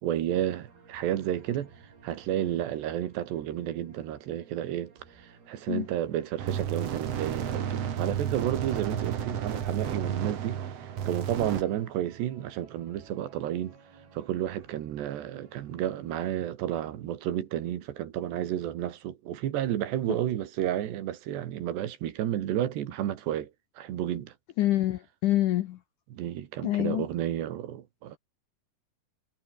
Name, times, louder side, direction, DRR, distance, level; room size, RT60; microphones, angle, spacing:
voice 1, 0.0-1.7 2.0-13.8 14.1-23.5 23.8-24.3 26.1-28.2, right 11 dB, 85° right, 4.1 m, -31 dB
sound 1, 0.7-16.2, right 5 dB, 65° right, 8.1 m, -57 dB
sound 2, 6.4-11.6, right 8 dB, 50° right, 2.3 m, -32 dB
voice 2, 24.6-25.8 26.6-27.1, left 14 dB, 75° left, 1.9 m, -26 dB
omnidirectional pair, 4.7 m